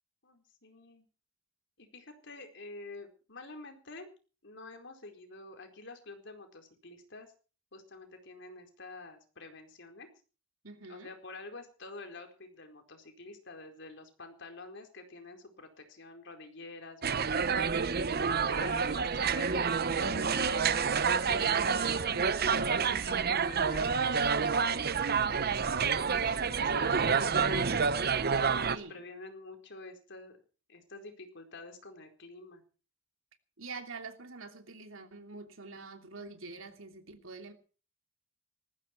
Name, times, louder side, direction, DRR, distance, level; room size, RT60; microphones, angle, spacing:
voice 1, 0.2-1.1 1.8-4.1 4.4-7.3 7.7-10.1 10.9-17.6 18.4-21.1 21.5-21.8 22.1-25.0 26.0-27.8 28.4-30.4 30.7-32.6, left 3 dB, 60° left, 4.4 m, -48 dB
voice 2, 10.6-11.1 28.7-29.0 33.6-37.5, right 4 dB, 75° right, 3.1 m, -45 dB
sound 1, 17.0-28.8, right 6 dB, 50° right, 0.9 m, -28 dB
20.0 x 15.0 x 4.6 m
head